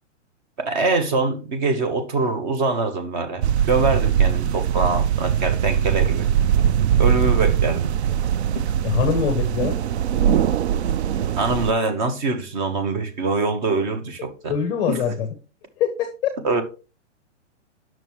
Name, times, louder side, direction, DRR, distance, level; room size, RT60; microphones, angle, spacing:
voice 1, 0.6-6.3 7.0-7.9 11.4-14.5 14.9-15.0 16.4-16.6, right 3 dB, 40° right, 1.1 m, -24 dB
sound 1, 3.4-11.7, right 9 dB, 60° right, 0.5 m, -21 dB
voice 2, 8.8-9.8 14.5-15.3 15.8-16.3, left 7 dB, 10° left, 0.7 m, -23 dB
8.8 x 6.1 x 3.1 m
hypercardioid pair, 160°, 37 cm